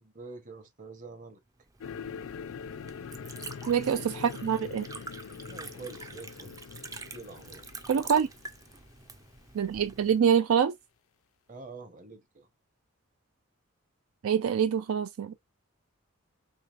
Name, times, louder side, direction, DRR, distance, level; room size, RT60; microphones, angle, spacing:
voice 1, 0.0-1.4 5.4-6.6 7.0-7.8 11.5-12.5, right 3 dB, 35° right, 1.0 m, -46 dB
Liquid, 1.6-10.2, right 3 dB, 15° right, 0.4 m, -46 dB
sound 1, 1.8-9.1, left 6 dB, 75° left, 0.4 m, -43 dB
voice 2, 3.7-4.9 7.9-8.3 9.5-10.7 14.2-15.3, right 7 dB, 80° right, 0.4 m, -25 dB
4.8 x 3.3 x 2.5 m
head